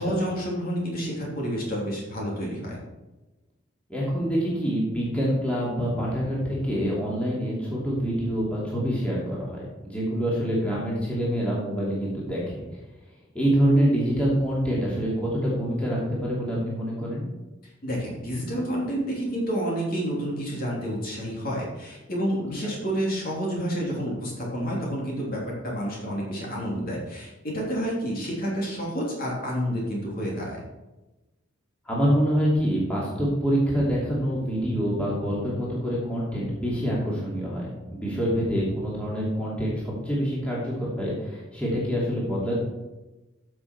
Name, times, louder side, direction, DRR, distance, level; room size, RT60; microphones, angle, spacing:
voice 1, 0.0-2.8 17.6-30.6, equal, 45° left, -3 dB, 3.3 m, -29 dB
voice 2, 3.9-12.8 13.3-17.2 31.8-42.6, equal, 5° left, -7 dB, 2.7 m, -26 dB
14.0 x 6.3 x 4.7 m, 1.1 s
head